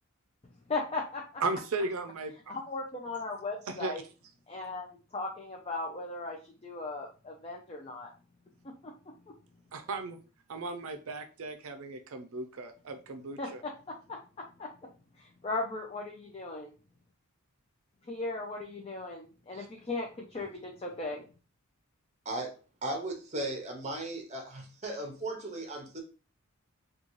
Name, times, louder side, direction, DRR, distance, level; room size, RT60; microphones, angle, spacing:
voice 1, 0.7-1.4 2.5-4.0 4.5-4.9 5.1-8.1 8.6-9.3 13.4-14.9 15.2-16.7 18.1-21.3, left 3 dB, 25° left, 0 dB, 0.4 m, -37 dB
voice 2, 1.4-2.5 3.7-3.9 9.7-10.2 10.5-13.6, right 3 dB, 70° right, 7 dB, 0.5 m, -36 dB
voice 3, 22.8-26.0, right 1 dB, 30° right, 3 dB, 0.8 m, -37 dB
3.8 x 2.3 x 3.0 m, 0.35 s
head